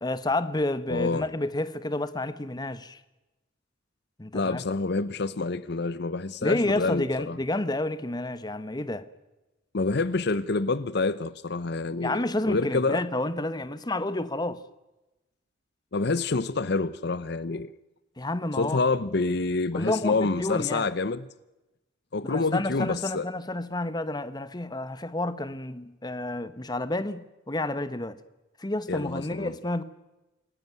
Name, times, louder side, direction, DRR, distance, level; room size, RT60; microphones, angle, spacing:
voice 1, 0.0-3.0 4.2-4.6 6.4-9.0 12.0-14.6 18.2-18.8 19.7-20.8 22.2-28.2 28.6-29.8, left 2 dB, 20° left, 1.1 m, -30 dB
voice 2, 0.9-1.3 4.3-7.4 9.7-13.0 15.9-17.7 18.6-21.3 22.1-23.3 28.9-29.5, left 3 dB, 60° left, 0.8 m, -27 dB
27.5 x 18.0 x 9.4 m
head